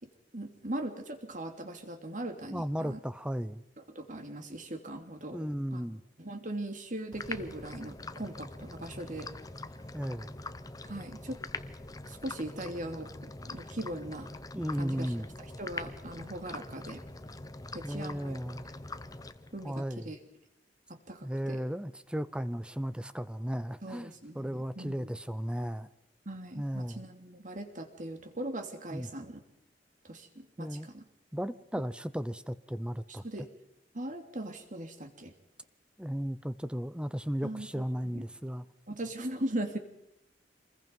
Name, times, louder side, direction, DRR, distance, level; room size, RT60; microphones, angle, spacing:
voice 1, 0.0-3.0 3.9-5.4 5.7-5.8 6.2-9.3 10.8-11.4 12.0-13.1 13.4-14.3 14.8-15.1 15.6-17.0 17.7-18.4 19.5-20.2 20.9-21.6 23.8-25.1 26.2-29.4 30.0-31.1 33.1-33.5 33.9-35.3 37.4-38.2 38.9-39.8, right 1 dB, 50° right, 6 dB, 3.0 m, -40 dB
voice 2, 2.5-3.6 5.3-6.0 9.9-10.3 14.5-15.3 17.8-18.7 19.6-20.1 21.2-25.9 26.6-27.0 28.9-29.1 30.6-30.9 31.3-33.2 36.0-38.6, equal, 5° right, 14 dB, 0.8 m, -35 dB
sound 1, 7.1-19.8, left 2 dB, 20° left, 0.9 m, -44 dB
27.0 x 21.0 x 5.5 m, 0.83 s
head